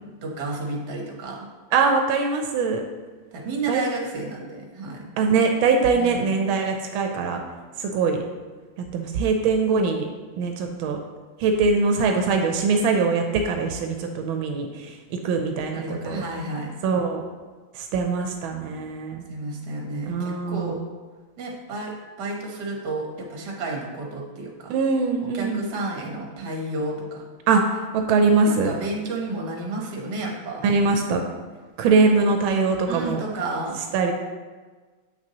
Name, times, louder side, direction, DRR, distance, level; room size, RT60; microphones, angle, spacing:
voice 1, 0.2-1.5 3.3-5.1 5.9-6.4 15.7-16.7 19.3-20.8 21.4-24.7 25.3-27.2 28.5-30.6 32.9-33.8, right 2 dB, 60° right, 0 dB, 1.6 m, -31 dB
voice 2, 1.7-2.8 3.7-3.8 5.2-7.4 7.8-8.2 8.9-10.1 10.4-11.0 11.4-16.2 16.8-17.2 17.7-19.2 20.1-20.8 24.7-25.7 27.5-27.6 27.9-28.7 30.6-31.2 31.8-33.2 33.9-34.1, right 4 dB, 90° right, 4 dB, 1.4 m, -22 dB
7.6 x 6.0 x 2.9 m, 1.4 s
omnidirectional pair, 2.2 m